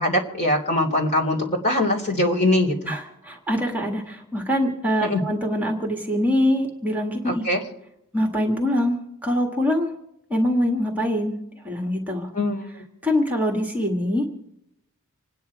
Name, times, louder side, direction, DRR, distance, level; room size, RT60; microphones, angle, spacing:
voice 1, 0.0-2.9 5.0-5.2 7.3-7.6 12.3-12.6, left 1 dB, 35° left, 1 dB, 3.5 m, -22 dB
voice 2, 2.9-7.5 8.1-9.9 10.3-11.3 11.6-12.3 13.0-14.3, equal, 10° right, 1 dB, 1.8 m, -24 dB
27.0 x 9.9 x 4.8 m, 0.81 s
head